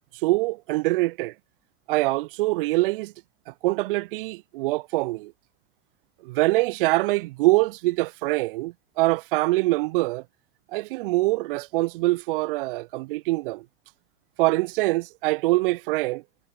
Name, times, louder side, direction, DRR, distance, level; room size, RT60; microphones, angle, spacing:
voice 1, 0.2-1.3 1.9-3.1 3.5-5.3 6.2-10.2 10.7-13.6 14.4-16.2, right 21 dB, 60° right, 0.5 m, -24 dB
figure-of-eight pair, 85°, 31 cm